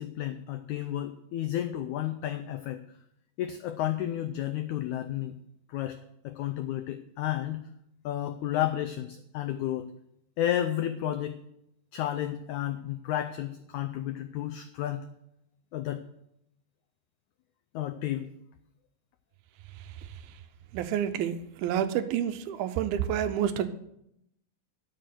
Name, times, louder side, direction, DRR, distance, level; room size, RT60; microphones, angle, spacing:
voice 1, 0.0-2.8 3.4-5.4 5.7-6.0 6.2-7.6 8.0-9.9 10.4-11.4 11.9-15.0 15.7-16.0 17.7-18.3, left 12 dB, 90° left, 9 dB, 1.7 m, -32 dB
voice 2, 20.7-23.7, right 9 dB, 85° right, 10 dB, 2.7 m, -29 dB
12.5 x 6.6 x 7.6 m, 0.78 s
omnidirectional pair, 4.2 m